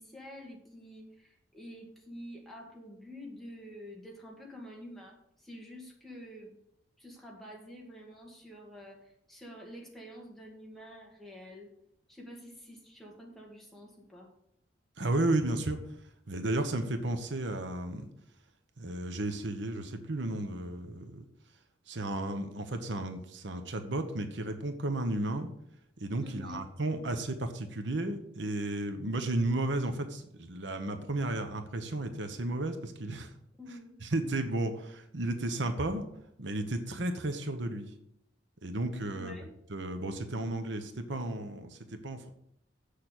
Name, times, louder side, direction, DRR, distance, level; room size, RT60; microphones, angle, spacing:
voice 1, 0.0-6.6 7.0-11.7 12.1-14.3 26.2-26.7 33.6-33.9 39.1-39.5, equal, ahead, -2 dB, 2.0 m, -48 dB
voice 2, 15.0-15.8 16.3-18.1 18.8-21.2 21.9-25.5 26.0-33.3 34.0-36.0 36.4-37.9 38.6-39.3 39.7-42.3, right 2 dB, 75° right, 8 dB, 1.1 m, -33 dB
7.5 x 6.7 x 8.1 m, 0.76 s
head